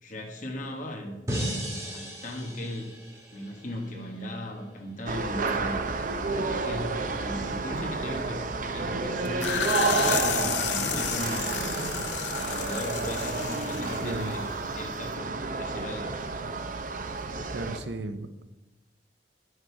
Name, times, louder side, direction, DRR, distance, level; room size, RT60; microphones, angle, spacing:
voice 1, 0.0-2.9 3.3-5.8 6.3-8.4 8.7-11.5 12.3-14.4 14.7-16.1, left 1 dB, 45° left, 2 dB, 1.6 m, -38 dB
sound 1, 1.3-4.4, equal, 20° right, 2.3 m, -36 dB
sound 2, 5.1-17.8, right 3 dB, 50° right, 0.7 m, -30 dB
sound 3, 9.3-14.8, left 8 dB, 90° left, 0.7 m, -32 dB
voice 2, 14.0-14.3 17.5-18.4, right 2 dB, 90° right, 10 dB, 0.7 m, -35 dB
9.2 x 6.5 x 4.8 m, 1.0 s
head